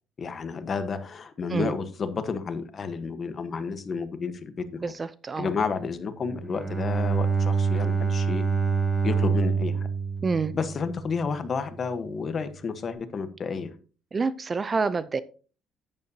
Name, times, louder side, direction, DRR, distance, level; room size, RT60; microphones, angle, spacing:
voice 1, 0.2-4.8 5.4-8.4 9.0-9.8 10.5-13.7, left 5 dB, 35° left, 1.2 m, -31 dB
voice 2, 4.8-5.5 10.2-10.5 14.1-15.2, right 4 dB, 25° right, 0.5 m, -27 dB
Bowed string instrument, 6.2-11.4, right 5 dB, 5° right, 2.1 m, -26 dB
10.5 x 9.6 x 2.8 m
cardioid pair, 135°, 0 cm